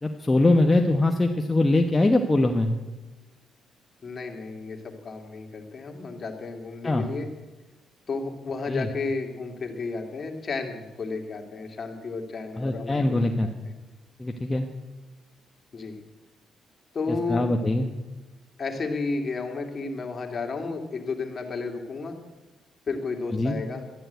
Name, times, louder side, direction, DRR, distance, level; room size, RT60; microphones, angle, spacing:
voice 1, 0.0-2.7 6.8-7.0 8.7-8.9 12.6-13.5 14.2-14.7 17.3-17.9 23.3-23.5, left 2 dB, 20° left, 3 dB, 1.1 m, -22 dB
voice 2, 4.0-7.3 8.1-13.5 15.7-16.0 16.9-17.5 18.6-22.2 22.9-23.8, left 4 dB, 40° left, 3 dB, 2.5 m, -32 dB
12.5 x 11.0 x 8.1 m, 1.1 s
cardioid pair, 90°, 0 cm